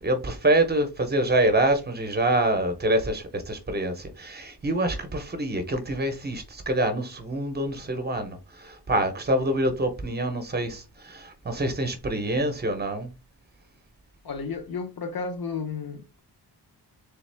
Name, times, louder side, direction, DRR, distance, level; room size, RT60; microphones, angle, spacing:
voice 1, 0.0-13.1, right 1 dB, 25° right, 0.7 m, -26 dB
voice 2, 14.2-16.2, left 5 dB, 60° left, 0.9 m, -33 dB
3.4 x 3.4 x 3.3 m
wide cardioid pair, 155°, 41 cm